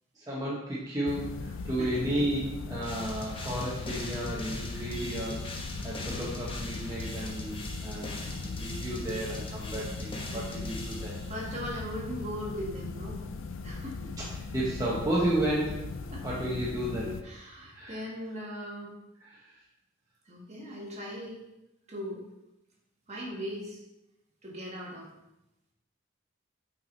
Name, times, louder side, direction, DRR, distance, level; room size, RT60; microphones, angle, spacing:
voice 1, 0.1-1.4 1.6-5.5 5.8-11.2 14.2-15.9 16.2-17.1 17.7-18.0 19.2-19.5, right 1 dB, 20° right, -7 dB, 1.1 m, -33 dB
sound 1, 1.1-17.2, left 4 dB, 70° left, 0.4 m, -39 dB
voice 2, 1.8-2.2 9.7-10.7 11.3-13.2 13.6-14.1 16.1-16.2 17.2-19.0 20.3-21.4 21.9-22.3 23.1-23.8 24.4-25.1, equal, 35° right, -3 dB, 1.6 m, -39 dB
sound 2, 2.8-11.6, left 1 dB, 25° left, 0.9 m, -41 dB
6.1 x 4.7 x 4.0 m, 0.91 s
head